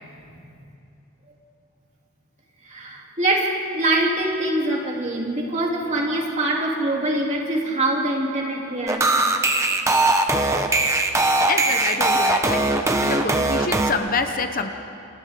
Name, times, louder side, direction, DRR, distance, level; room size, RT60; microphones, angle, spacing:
voice 1, 2.6-9.1, right 1 dB, 30° right, -2 dB, 3.1 m, -24 dB
sound 1, 8.9-13.9, right 2 dB, 15° right, 1.1 m, -20 dB
voice 2, 11.5-12.7 13.0-14.7, left 4 dB, 40° left, 7 dB, 0.9 m, -27 dB
28.5 x 28.0 x 3.8 m, 2.6 s
head